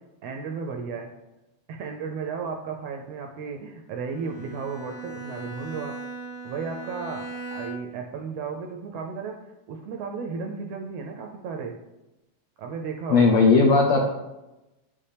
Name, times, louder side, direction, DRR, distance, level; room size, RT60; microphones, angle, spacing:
voice 1, 0.2-1.1 1.7-6.0 6.4-11.8 12.6-13.4, right 5 dB, 80° right, 3 dB, 1.5 m, -34 dB
Bowed string instrument, 4.0-8.1, right 3 dB, 60° left, 0.7 m, -38 dB
voice 2, 13.1-14.1, left 4 dB, 85° left, 1 dB, 1.2 m, -17 dB
8.8 x 5.6 x 3.3 m, 1.0 s
omnidirectional pair, 3.3 m